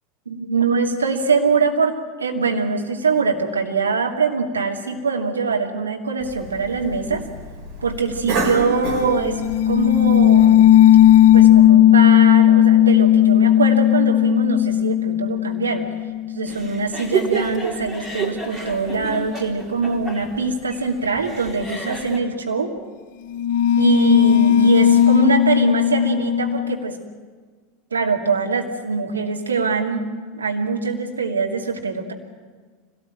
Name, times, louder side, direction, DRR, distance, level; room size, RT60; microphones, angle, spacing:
voice 1, 0.3-7.2 7.8-10.8 11.3-15.9 16.3-22.7 23.8-27.0 27.9-30.1 30.3-32.1, right 4 dB, 80° right, 1 dB, 2.5 m, -23 dB
Cough, 6.2-11.7, right 2 dB, 45° right, 4.8 m, -31 dB
sound 1, 9.2-16.8 23.3-26.8, left 11 dB, 55° left, 0.6 m, -15 dB
sound 2, 16.5-22.2, right 5 dB, 20° right, 4.3 m, -29 dB
25.0 x 18.0 x 9.0 m, 1.5 s
figure-of-eight pair, 85°, 0 cm